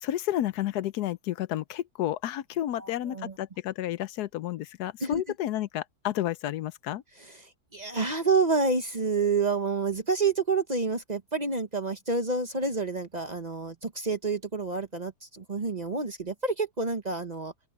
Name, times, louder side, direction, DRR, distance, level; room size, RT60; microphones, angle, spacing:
voice 1, 0.0-7.0, left 13 dB, 80° left, 1.2 m, -31 dB
voice 2, 2.7-3.3 5.0-5.2 7.2-17.5, right 4 dB, 30° right, 1.0 m, -28 dB
open air
omnidirectional pair, 1.7 m